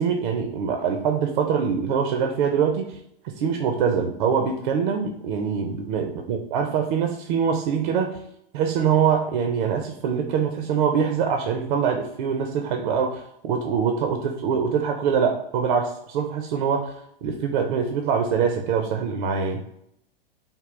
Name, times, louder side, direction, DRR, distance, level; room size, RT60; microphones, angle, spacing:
voice 1, 0.0-3.0 3.2-8.2 8.5-16.9 17.2-19.6, right 6 dB, 55° right, 4 dB, 0.5 m, -24 dB
3.6 x 2.2 x 3.1 m, 0.74 s
hypercardioid pair, 110°, 30 cm